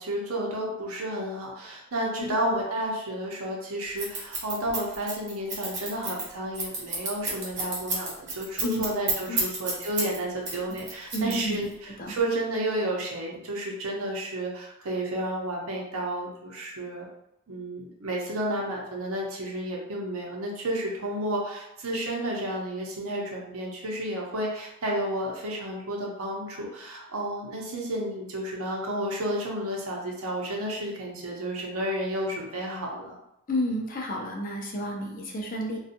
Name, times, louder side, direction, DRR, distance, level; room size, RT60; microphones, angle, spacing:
voice 1, 0.0-11.7 12.1-17.1 17.5-33.2, right 1 dB, 80° right, -2 dB, 0.7 m, -31 dB
Scissors, 4.0-10.2 10.5-11.7, right 3 dB, 50° right, 0.8 m, -30 dB
voice 2, 11.1-11.7 12.0-12.1 33.5-35.8, equal, 40° left, 0 dB, 0.4 m, -31 dB
2.5 x 2.3 x 2.7 m, 0.81 s
head